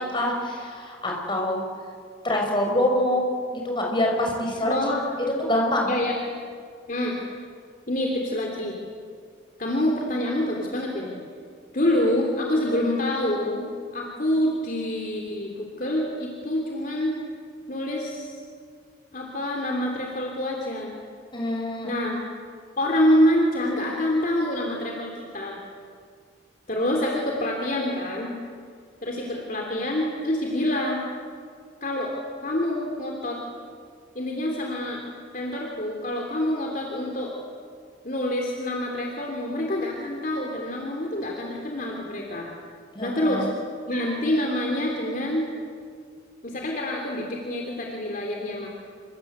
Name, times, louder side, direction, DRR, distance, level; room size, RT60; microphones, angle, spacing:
voice 1, 0.0-1.6 2.2-3.2 3.5-4.7 5.4-5.9 21.3-21.9 42.9-43.5, left 1 dB, 25° left, 0 dB, 5.8 m, -25 dB
voice 2, 4.7-5.0 5.9-6.1 6.9-7.2 7.9-8.8 9.6-11.2 11.7-13.6 13.9-17.1 17.7-18.4 19.1-21.0 21.8-22.2 22.8-25.6 26.7-28.3 29.0-31.1 31.8-32.1 32.4-33.4 34.1-35.0 35.3-37.3 38.0-42.5 43.0-43.5 43.9-45.5 46.4-48.7, left 1 dB, 45° left, 0 dB, 3.3 m, -26 dB
27.5 x 24.5 x 8.2 m, 2.1 s
head